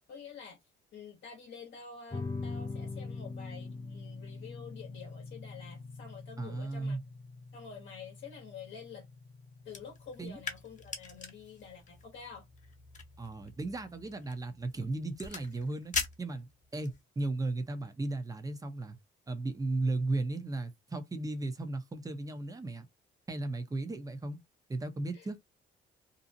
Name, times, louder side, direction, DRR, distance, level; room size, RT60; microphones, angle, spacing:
voice 1, 0.1-0.6 0.9-7.0 7.5-9.1 9.6-12.5 25.1-25.3, left 6 dB, 65° left, 0.8 m, -48 dB
sound 1, 2.1-13.1, left 3 dB, 15° left, 0.4 m, -44 dB
voice 2, 6.4-7.0 10.2-10.4 13.2-15.9 16.2-19.0 19.3-22.9 23.3-24.4 24.7-25.4, right 2 dB, 20° right, 0.7 m, -35 dB
sound 2, 9.6-17.0, left 5 dB, 40° left, 0.8 m, -42 dB
2.6 x 2.0 x 2.6 m
cardioid pair, 90°, 20 cm